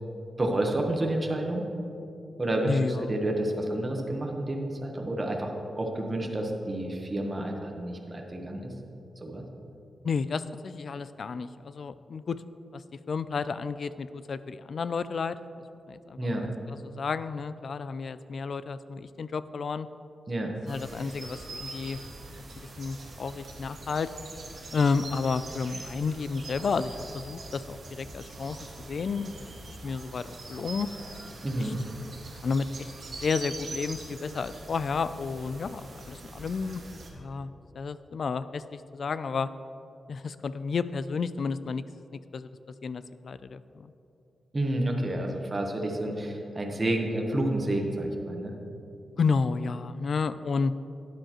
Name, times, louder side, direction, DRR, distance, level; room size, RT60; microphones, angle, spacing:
voice 1, 0.4-1.6 2.4-8.7 9.2-9.4 16.2-16.5 20.3-20.5 31.4-31.8 44.5-48.5, right 1 dB, 25° right, 1 dB, 1.1 m, -30 dB
voice 2, 2.6-3.1 10.0-12.4 12.7-12.8 13.1-15.4 15.9-16.5 16.8-19.9 20.6-22.0 22.5-24.1 24.7-29.3 29.7-30.9 31.6-31.7 32.4-36.8 37.1-39.5 40.1-41.8 42.3-42.5 42.8-43.9 49.2-50.7, left 5 dB, 55° left, 14 dB, 0.3 m, -31 dB
sound 1, 20.7-37.1, right 2 dB, 55° right, 1.6 m, -43 dB
12.5 x 10.0 x 3.0 m, 2.8 s
wide cardioid pair, 140°, 0 cm